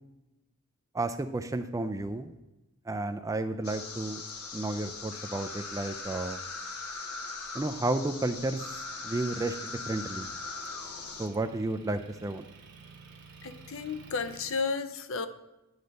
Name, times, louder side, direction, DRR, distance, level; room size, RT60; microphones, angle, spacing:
voice 1, 0.9-2.4 2.9-4.2 4.5-6.4 7.5-8.8 9.0-10.3 11.2-12.5, right 2 dB, 15° right, 9 dB, 0.3 m, -32 dB
sound 1, 3.6-11.3, left 3 dB, 80° left, 1.1 m, -40 dB
Motor vehicle (road) / Engine, 8.3-14.7, right 5 dB, 50° right, 1.1 m, -54 dB
voice 2, 13.4-15.3, left 4 dB, 60° left, 10 dB, 0.6 m, -33 dB
9.6 x 4.0 x 6.4 m, 1.0 s
head